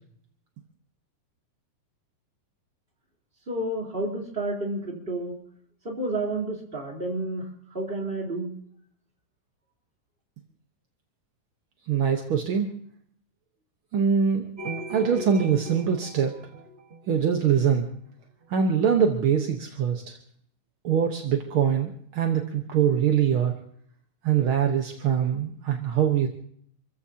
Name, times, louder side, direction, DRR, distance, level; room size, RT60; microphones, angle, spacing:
voice 1, 3.5-5.4 5.8-8.5, right 1 dB, 15° right, -2 dB, 3.9 m, -30 dB
voice 2, 11.9-12.7 13.9-14.5 14.9-16.3 17.1-17.9 18.5-20.2 20.8-23.5 24.2-26.3, right 7 dB, 60° right, 3 dB, 1.4 m, -23 dB
sound 1, 14.6-17.7, right 2 dB, 45° right, 0.9 m, -38 dB
28.0 x 15.0 x 2.8 m, 0.64 s
omnidirectional pair, 3.8 m